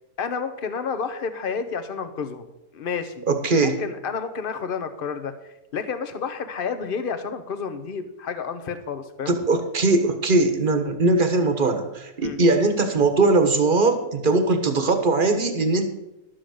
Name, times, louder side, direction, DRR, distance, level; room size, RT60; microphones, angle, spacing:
voice 1, 0.2-2.5 2.7-3.2 3.6-9.3 12.2-12.4, left 6 dB, 40° left, 9 dB, 1.0 m, -30 dB
voice 2, 3.3-3.8 9.3-15.9, right 3 dB, 35° right, 7 dB, 1.3 m, -20 dB
12.0 x 7.8 x 6.4 m, 0.96 s
omnidirectional pair, 1.6 m